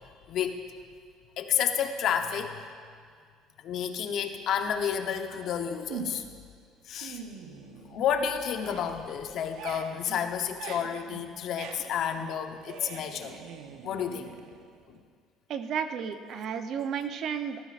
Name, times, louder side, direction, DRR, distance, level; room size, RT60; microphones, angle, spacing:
voice 1, 0.3-0.6 1.4-2.6 3.6-6.2 6.9-7.2 7.9-13.4 13.8-14.3 14.9-15.0, left 8 dB, 60° left, 6 dB, 0.9 m, -30 dB
sound 1, 5.9-6.4 6.8-8.2 8.5-15.0, right 6 dB, 80° right, 1.0 m, -43 dB
voice 2, 15.5-17.6, right 7 dB, 55° right, 8 dB, 0.8 m, -32 dB
18.5 x 13.5 x 2.5 m, 2.1 s
cardioid pair, 120°, 0 cm